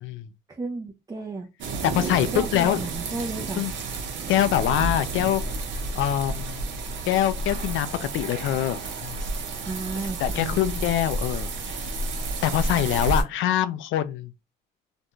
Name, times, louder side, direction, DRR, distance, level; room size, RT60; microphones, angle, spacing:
voice 1, 0.5-1.5 2.3-3.6 9.6-10.6, right 3 dB, 20° right, 0.4 m, -33 dB
sound 1, 1.6-13.2, right 2 dB, 70° right, 0.8 m, -31 dB
voice 2, 1.8-2.8 3.6-3.7 4.3-5.4 5.9-6.6 7.1-9.2 10.0-11.5 12.4-14.3, left 12 dB, 80° left, 0.4 m, -24 dB
2.5 x 2.2 x 2.9 m
cardioid pair, 90°, 20 cm